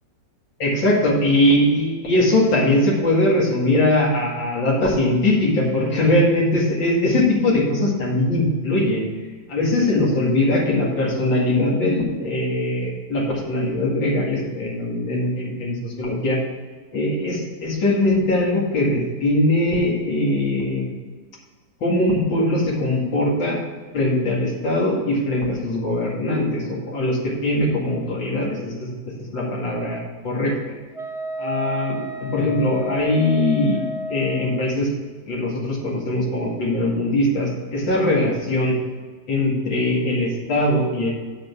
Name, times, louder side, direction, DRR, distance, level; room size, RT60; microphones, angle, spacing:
voice 1, 0.6-9.1 9.5-16.4 16.9-20.9 21.8-23.6 23.9-28.9 29.3-30.7 31.4-33.8 34.1-34.9 35.3-38.8 39.3-41.1, left 1 dB, 80° left, -4 dB, 2.8 m, -21 dB
Wind instrument woodwind instrument, 30.9-34.6, left 1 dB, 35° left, 0.5 m, -31 dB
8.7 x 5.3 x 6.9 m, 1.4 s
omnidirectional pair, 2.0 m